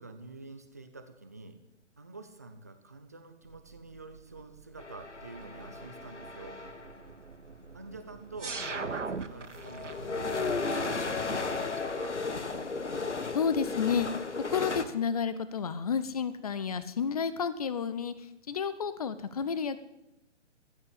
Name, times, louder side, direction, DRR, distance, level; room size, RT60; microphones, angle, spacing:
voice 1, 0.0-1.6 2.0-6.6 7.7-12.2, right 3 dB, 15° right, 9 dB, 0.5 m, -47 dB
sound 1, 3.4-10.1, right 5 dB, 75° right, 1.1 m, -42 dB
sound 2, 4.8-7.0 7.9-8.0 8.4-14.8, left 4 dB, 70° left, 1.5 m, -35 dB
voice 2, 13.3-14.1 14.5-19.8, left 6 dB, 30° left, 14 dB, 0.9 m, -31 dB
14.0 x 8.7 x 8.2 m, 0.89 s
figure-of-eight pair, 140°, 36 cm